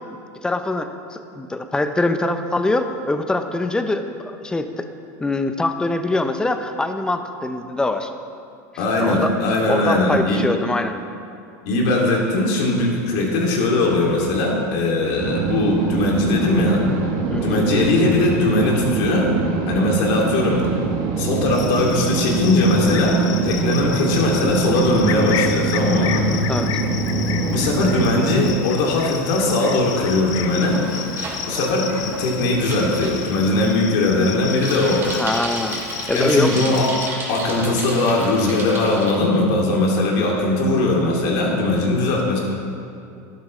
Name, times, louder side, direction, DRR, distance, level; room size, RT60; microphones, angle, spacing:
voice 1, 0.4-4.9 5.2-8.1 9.0-9.3 9.7-11.0 17.3-17.6 26.5-26.7 35.0-35.8 36.1-36.6, left 2 dB, 10° left, 8 dB, 0.7 m, -23 dB
voice 2, 8.8-10.4 11.7-16.8 17.4-19.3 19.7-20.7 21.2-26.5 27.5-30.8 31.5-35.1 36.1-36.9 37.3-42.4, left 2 dB, 65° left, -1 dB, 2.6 m, -20 dB
sound 1, 15.2-28.5, right 4 dB, 55° right, 1.1 m, -23 dB
Cricket, 21.5-37.1, left 8 dB, 45° left, 0.8 m, -32 dB
Bicycle, 29.7-39.1, right 2 dB, 25° right, 2.2 m, -34 dB
12.5 x 11.0 x 3.2 m, 2.5 s
supercardioid pair, 120°, 9 cm